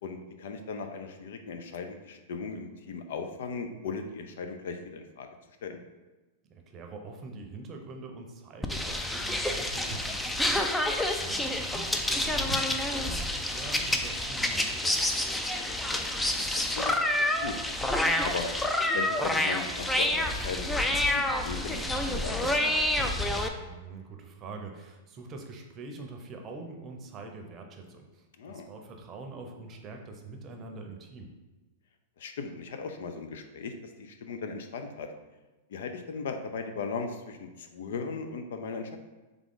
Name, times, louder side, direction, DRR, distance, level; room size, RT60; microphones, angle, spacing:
voice 1, 0.0-5.3 5.6-5.8 11.2-11.3 15.7-16.3 16.8-17.6 18.2-18.5 18.9-20.7 21.1-23.1 28.4-28.7 32.2-33.7 34.0-35.1 35.7-39.0, left 5 dB, 70° left, 6 dB, 0.5 m, -38 dB
voice 2, 6.4-15.0 23.6-31.3, right 3 dB, 30° right, 3 dB, 0.7 m, -44 dB
sound 1, 8.6-23.5, left 1 dB, 5° left, 0.4 m, -28 dB
Walk footsteps, 9.7-14.2, right 2 dB, 90° right, 0.6 m, -44 dB
3.7 x 3.5 x 3.6 m, 1.2 s
hypercardioid pair, 125°, 0 cm